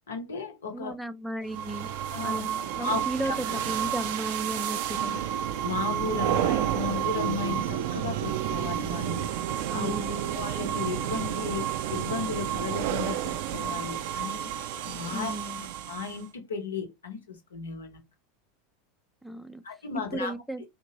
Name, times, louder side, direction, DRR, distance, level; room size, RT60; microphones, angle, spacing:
voice 1, 0.1-0.9 2.1-2.4 2.8-3.4 5.1-5.2 5.6-9.3 9.7-9.9 10.3-14.5 14.8-15.3 15.9-18.0 19.6-20.3, left 6 dB, 80° left, 0.8 m, -35 dB
voice 2, 0.7-1.9 2.2-5.2 9.7-10.4 15.1-15.7 19.2-19.6 20.1-20.7, right 1 dB, ahead, 0.4 m, -35 dB
sound 1, 1.5-16.3, right 10 dB, 60° right, 0.4 m, -30 dB
2.9 x 2.6 x 2.8 m
figure-of-eight pair, 85°, 0 cm